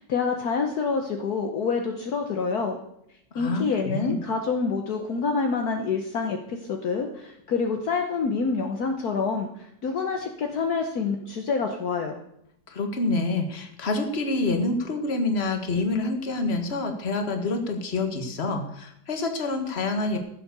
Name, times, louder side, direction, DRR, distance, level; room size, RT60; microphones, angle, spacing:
voice 1, 0.0-2.8 3.3-12.2, left 5 dB, 60° left, 3 dB, 1.5 m, -27 dB
voice 2, 3.3-4.2 12.7-20.2, left 2 dB, 35° left, 5 dB, 1.7 m, -27 dB
14.0 x 7.6 x 6.8 m, 0.75 s
omnidirectional pair, 1.9 m